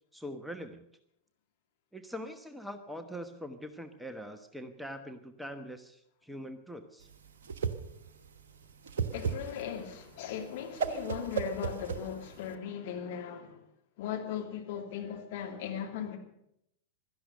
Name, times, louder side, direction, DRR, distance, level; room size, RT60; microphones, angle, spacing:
voice 1, 0.1-0.9 1.9-7.1, equal, ahead, 1.1 m, -43 dB
Whoosh swoosh swish, 7.0-12.5, right 6 dB, 60° right, 1.1 m, -35 dB
voice 2, 9.1-13.6 14.0-16.2, left 8 dB, 50° left, 2.8 m, -38 dB
16.5 x 12.5 x 6.6 m
figure-of-eight pair, 90°, 0 cm